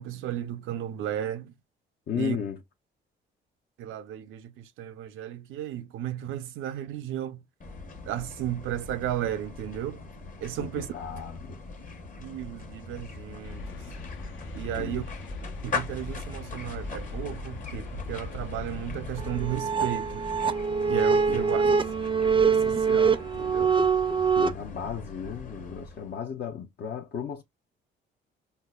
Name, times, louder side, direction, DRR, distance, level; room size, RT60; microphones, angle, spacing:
voice 1, 0.0-1.5 2.1-2.4 3.8-7.4 8.0-10.0 10.4-10.9 12.2-13.6 14.5-15.1 15.6-20.3 20.9-21.7 22.5-23.8, right 11 dB, 85° right, 0.5 m, -34 dB
voice 2, 2.1-2.6 10.6-11.6 14.8-15.1 21.3-21.8 24.3-27.4, left 7 dB, 55° left, 0.6 m, -35 dB
sound 1, 7.6-26.2, left 3 dB, 40° left, 1.0 m, -41 dB
sound 2, 13.4-19.6, left 2 dB, 80° left, 1.0 m, -39 dB
sound 3, 19.2-24.5, right 5 dB, 25° right, 0.4 m, -24 dB
5.3 x 2.0 x 2.3 m
cardioid pair, 90°, 20 cm